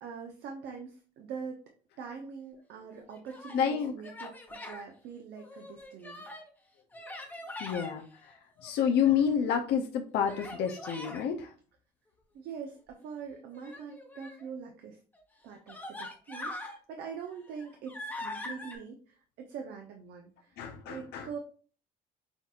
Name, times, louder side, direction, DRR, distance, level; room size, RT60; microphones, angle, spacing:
voice 1, 0.0-1.6 2.0-6.3 12.3-15.0 15.4-21.4, right 6 dB, 75° right, 2 dB, 0.7 m, -43 dB
Human voice, 3.0-3.6 4.0-4.8 5.4-6.5 6.9-7.9 8.6-9.3 10.2-11.2 13.5-14.4 15.1-15.2 15.7-16.8 17.2-18.8, left 2 dB, 10° left, 0.9 m, -43 dB
voice 2, 3.5-3.9 7.6-8.4 8.6-11.5 20.6-21.3, left 8 dB, 75° left, 3 dB, 0.5 m, -29 dB
5.8 x 2.8 x 2.4 m, 0.41 s
cardioid pair, 110°, 17 cm